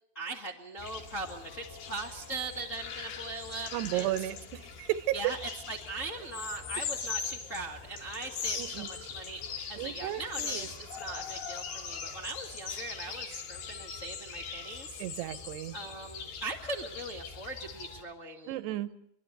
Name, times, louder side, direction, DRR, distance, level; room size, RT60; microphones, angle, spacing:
voice 1, 0.1-4.3 5.1-9.4 9.7-15.0 15.7-18.6, right 3 dB, 40° left, 1 dB, 1.0 m, -40 dB
sound 1, 0.8-18.0, left 6 dB, 70° left, 4.4 m, -41 dB
voice 2, 3.7-5.3 8.5-8.9 9.8-10.7 15.0-15.7 18.5-18.9, right 14 dB, 80° right, 13 dB, 3.1 m, -33 dB
23.5 x 23.0 x 6.7 m, 0.74 s
omnidirectional pair, 4.8 m